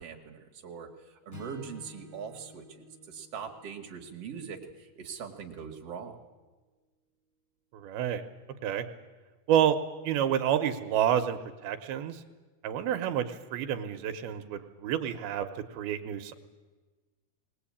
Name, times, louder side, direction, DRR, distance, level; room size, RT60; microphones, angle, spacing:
voice 1, 0.0-6.2, right 6 dB, 45° right, 2 dB, 2.4 m, -42 dB
Strum, 1.3-5.6, left 4 dB, 5° left, 2.4 m, -53 dB
voice 2, 7.7-8.3 8.6-8.9 9.5-9.8 10.0-12.2 12.6-16.3, right 10 dB, 85° right, 8 dB, 2.8 m, -29 dB
21.0 x 19.0 x 8.6 m, 1.3 s
omnidirectional pair, 4.4 m